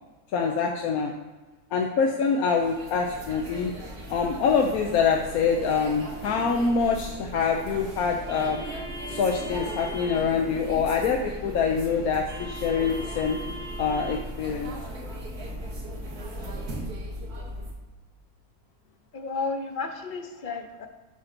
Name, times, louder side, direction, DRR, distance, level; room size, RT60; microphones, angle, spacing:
voice 1, 0.3-1.1 1.7-3.7 4.1-8.6 9.1-13.4 13.8-14.7, left 5 dB, 75° left, 2 dB, 1.2 m, -25 dB
sound 1, 2.5-17.7, right 1 dB, 90° right, 2.0 m, -37 dB
voice 2, 19.1-20.9, left 4 dB, 45° left, 6 dB, 0.7 m, -32 dB
11.0 x 3.9 x 5.9 m, 1.2 s
omnidirectional pair, 1.6 m